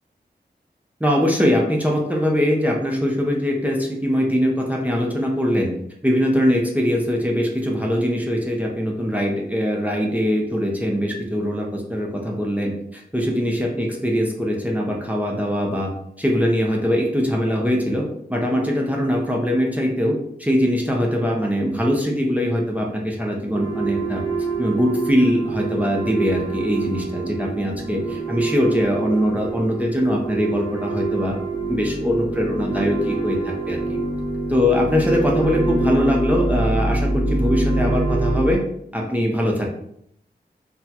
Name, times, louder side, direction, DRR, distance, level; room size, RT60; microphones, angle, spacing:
voice 1, 1.0-5.7 6.0-15.9 16.2-18.0 18.3-24.2 24.6-31.4 31.7-34.0 34.5-38.6 38.9-39.7, equal, 10° right, -1 dB, 0.6 m, -22 dB
sound 1, 23.5-38.5, right 2 dB, 30° right, 1.4 m, -25 dB
4.0 x 2.2 x 2.8 m, 0.72 s
wide cardioid pair, 60°, 18 cm